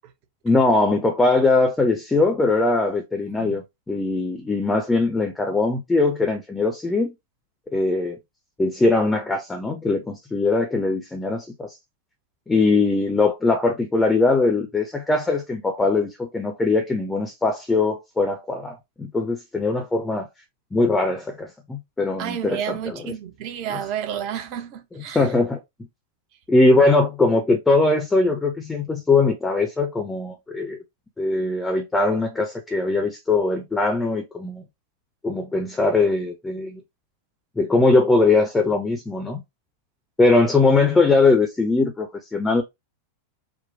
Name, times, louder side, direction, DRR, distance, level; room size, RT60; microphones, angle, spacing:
voice 1, 0.4-7.1 7.7-8.2 8.6-11.8 12.5-20.3 20.7-23.2 23.7-23.8 24.9-25.6 26.5-30.8 31.2-34.6 35.2-36.8 37.6-39.4 40.2-42.6, left 3 dB, 10° left, 0.6 m, -21 dB
voice 2, 22.2-25.2, right 9 dB, 45° right, 0.7 m, -31 dB
4.0 x 2.1 x 2.6 m
figure-of-eight pair, 90°, 0 cm